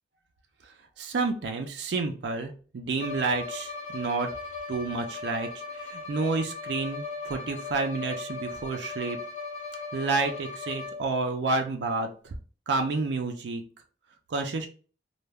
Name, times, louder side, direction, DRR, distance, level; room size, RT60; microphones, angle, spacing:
voice 1, 1.0-4.3 4.7-5.5 5.7-9.2 9.9-12.3 12.7-13.6 14.3-14.7, right 3 dB, 70° right, 4 dB, 0.4 m, -30 dB
Bowed string instrument, 3.0-11.3, left 4 dB, 45° left, 0.9 m, -38 dB
2.2 x 2.1 x 3.3 m, 0.38 s
head